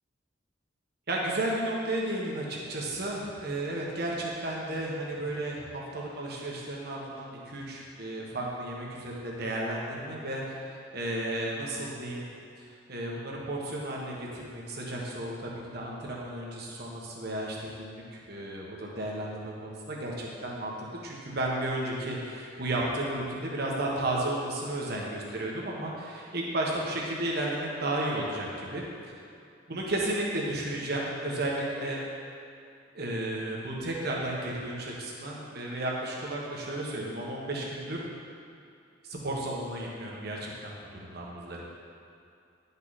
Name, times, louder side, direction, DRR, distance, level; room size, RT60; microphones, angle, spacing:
voice 1, 1.1-12.2 12.9-28.9 29.7-32.0 32.9-38.0 39.0-41.6, right 1 dB, 55° right, -3 dB, 1.4 m, -33 dB
10.5 x 5.6 x 4.2 m, 2.4 s
head